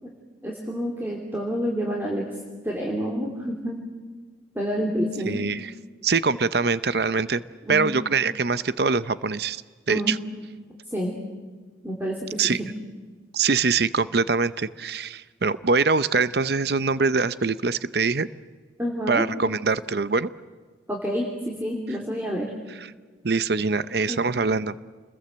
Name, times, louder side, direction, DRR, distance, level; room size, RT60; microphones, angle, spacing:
voice 1, 0.4-2.3 2.6-3.7 4.5-5.4 7.7-7.9 9.9-10.1 10.9-11.2 11.8-12.7 18.8-19.2 20.9-22.5 24.1-24.3, equal, 10° right, -2 dB, 3.2 m, -28 dB
voice 2, 5.3-5.7 6.0-7.4 7.7-9.6 9.9-10.2 12.4-12.6 13.3-18.3 19.1-20.3 22.8-22.9 23.2-24.8, right 4 dB, 60° right, 15 dB, 0.7 m, -23 dB
29.0 x 21.5 x 7.9 m, 1.4 s
head